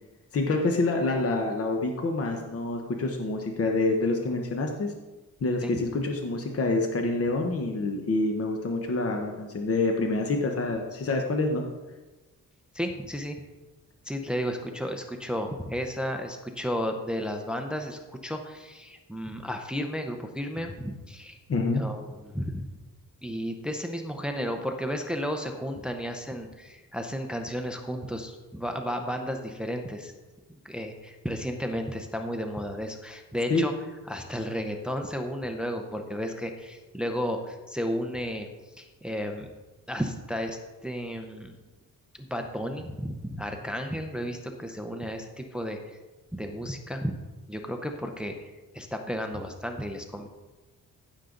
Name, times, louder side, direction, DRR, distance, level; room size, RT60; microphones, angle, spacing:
voice 1, 0.3-4.9 5.4-11.6 21.5-21.8 33.5-33.6, left 2 dB, 45° left, 2 dB, 1.0 m, -27 dB
voice 2, 12.7-13.4 14.0-21.4 21.7-22.7 23.2-30.1 30.5-33.7 34.1-39.5 39.9-41.5 42.2-46.0 46.3-47.1 47.5-48.4 48.7-50.3, equal, 5° right, 4 dB, 0.7 m, -33 dB
15.5 x 6.6 x 3.9 m, 1.2 s
wide cardioid pair, 165°, 34 cm